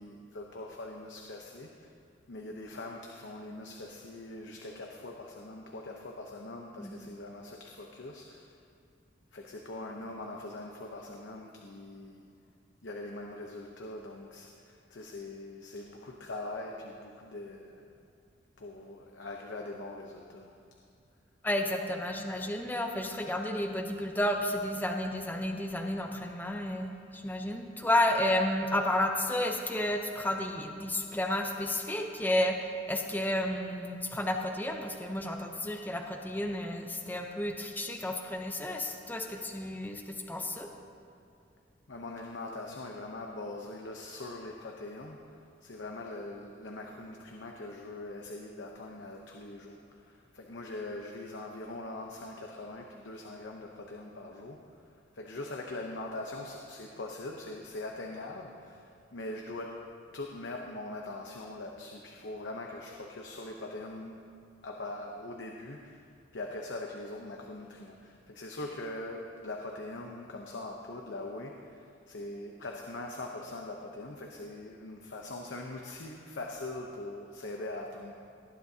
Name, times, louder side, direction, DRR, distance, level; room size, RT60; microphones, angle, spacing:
voice 1, 0.0-1.9 2.3-8.6 9.3-12.3 12.8-17.8 18.6-20.6 41.9-45.4 45.6-54.6 55.1-59.8 60.1-64.2 64.6-66.1 66.3-78.1, left 2 dB, 80° left, 1 dB, 0.8 m, -42 dB
voice 2, 21.4-40.7, left 1 dB, 10° left, 3 dB, 0.7 m, -31 dB
18.5 x 10.5 x 2.8 m, 2.5 s
head